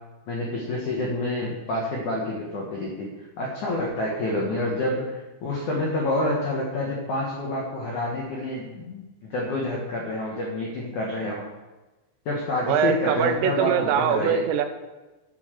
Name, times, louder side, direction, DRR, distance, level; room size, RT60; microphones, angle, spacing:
voice 1, 0.3-11.5 12.3-14.4, left 1 dB, 85° left, -3 dB, 1.7 m, -28 dB
voice 2, 12.7-14.6, right 8 dB, 80° right, 7 dB, 2.6 m, -23 dB
9.3 x 7.1 x 6.6 m, 1.1 s
omnidirectional pair, 5.8 m